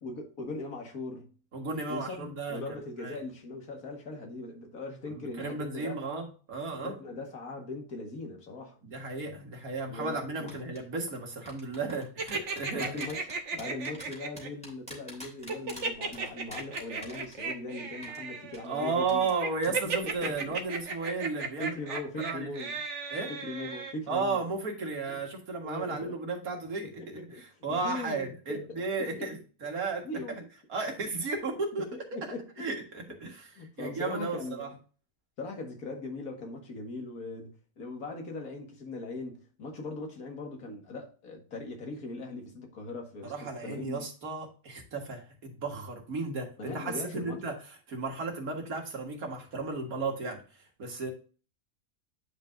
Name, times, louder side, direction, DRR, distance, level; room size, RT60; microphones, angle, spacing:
voice 1, 0.0-1.3 1.9-6.2 6.8-8.8 9.9-10.5 12.7-19.3 20.0-20.5 21.6-22.8 23.3-24.4 25.1-25.2 25.6-26.2 27.0-27.4 27.7-29.3 30.0-30.5 31.7-31.8 32.1-32.5 33.6-34.8 35.4-44.0 46.6-47.4, left 2 dB, 75° left, 2.2 m, -40 dB
voice 2, 1.5-3.2 5.1-7.0 8.8-12.9 18.6-22.5 23.1-23.3 24.1-30.4 30.7-31.9 32.1-32.2 32.6-33.5 33.8-34.7 43.2-47.5 47.9-50.4 50.8-51.1, right 3 dB, 75° right, 2.2 m, -34 dB
sound 1, 10.5-10.8 11.4-17.7 18.0-18.2 18.5-18.7 19.1-19.4 19.6-19.9 20.2-20.4, equal, 5° left, 2.9 m, -46 dB
sound 2, 12.2-14.5 15.5-23.9, right 5 dB, 55° right, 1.3 m, -35 dB
9.4 x 5.5 x 2.6 m
omnidirectional pair, 1.5 m